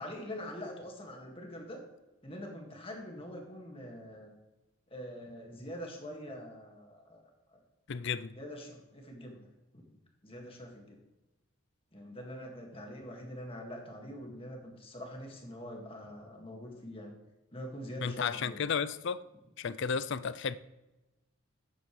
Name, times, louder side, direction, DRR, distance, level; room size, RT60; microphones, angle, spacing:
voice 1, 0.0-1.8 2.2-4.3 4.9-7.2 7.5-7.6 8.4-9.5 9.7-9.8 10.2-11.0 11.9-17.2 17.5-18.6, equal, 25° left, 1.9 m, -44 dB
voice 2, 7.9-8.3 18.0-19.2 19.6-20.6, left 6 dB, 55° left, 0.4 m, -33 dB
12.0 x 9.2 x 3.3 m
head